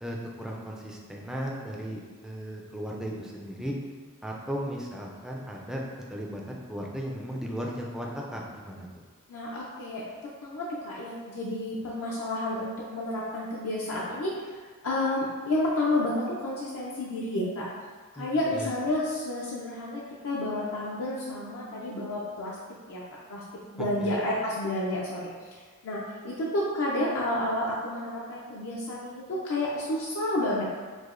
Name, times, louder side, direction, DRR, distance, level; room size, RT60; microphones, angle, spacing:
voice 1, 0.0-3.8 4.2-5.8 6.1-8.9 18.2-18.7 23.8-24.2, equal, 5° right, -2 dB, 0.3 m, -36 dB
voice 2, 9.3-17.7 18.1-22.6 22.9-23.0 23.3-23.4 23.7-30.8, left 1 dB, 70° left, -5 dB, 0.4 m, -30 dB
4.7 x 2.0 x 2.4 m, 1.5 s
head